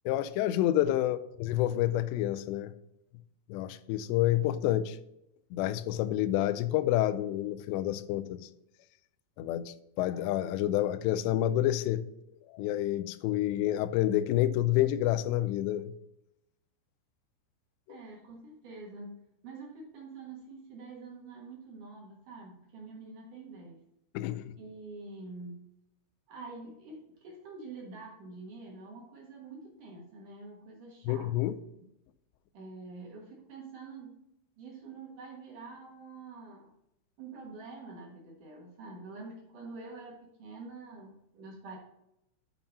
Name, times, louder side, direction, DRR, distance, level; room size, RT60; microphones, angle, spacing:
voice 1, 0.1-2.7 3.5-5.0 5.5-8.5 9.4-12.1 12.5-15.9 17.9-18.0 24.1-24.5 31.1-31.5, left 13 dB, 85° left, 2.5 m, -29 dB
voice 2, 17.9-23.8 24.6-25.7 26.3-31.3 31.8-31.9 32.5-34.2 34.6-36.7 37.2-41.8, right 3 dB, 60° right, 2.2 m, -46 dB
7.4 x 5.7 x 5.4 m
omnidirectional pair, 5.5 m